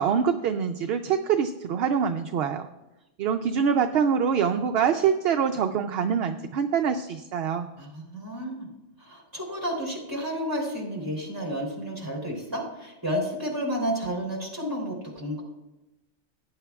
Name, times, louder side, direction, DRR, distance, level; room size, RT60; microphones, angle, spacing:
voice 1, 0.0-2.7 3.2-7.7, right 7 dB, 65° right, 7 dB, 0.7 m, -25 dB
voice 2, 7.8-8.7 9.0-15.4, equal, 15° right, -3 dB, 3.0 m, -31 dB
18.0 x 9.8 x 2.3 m, 0.99 s
omnidirectional pair, 1.3 m